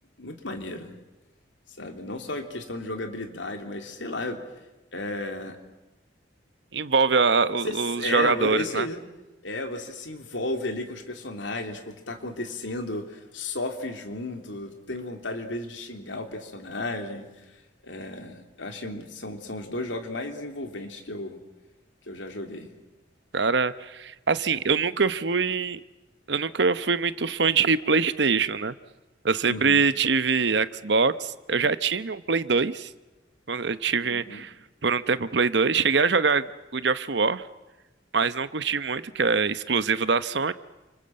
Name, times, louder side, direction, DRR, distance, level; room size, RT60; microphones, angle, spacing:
voice 1, 0.2-0.9 1.8-4.4 4.9-5.6 7.5-9.0 9.4-17.6 17.8-21.4 22.0-22.7 29.5-29.8 34.1-34.4, left 2 dB, 90° left, 5 dB, 3.1 m, -34 dB
voice 2, 6.7-8.9 23.3-25.8 26.3-28.7 29.2-32.9 33.5-34.5 34.8-37.4 38.1-40.5, right 5 dB, 65° right, 14 dB, 0.9 m, -24 dB
29.5 x 25.5 x 7.7 m, 1.1 s
head